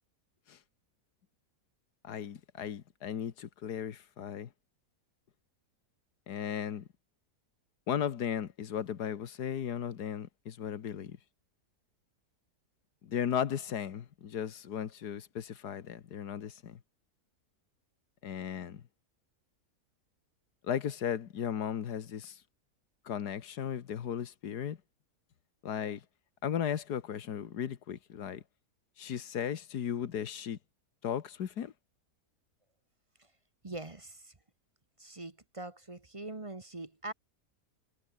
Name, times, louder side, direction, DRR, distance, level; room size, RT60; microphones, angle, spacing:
voice 1, 2.0-4.5 6.3-6.9 7.9-11.2 13.0-16.8 18.2-18.8 20.7-22.4 23.1-24.8 25.6-26.0 26.4-28.4 29.0-30.6 31.0-31.7, left 9 dB, 85° left, 1.8 m, -36 dB
voice 2, 33.6-34.3 35.0-37.1, right 2 dB, 20° right, 1.2 m, -43 dB
omnidirectional pair, 1.7 m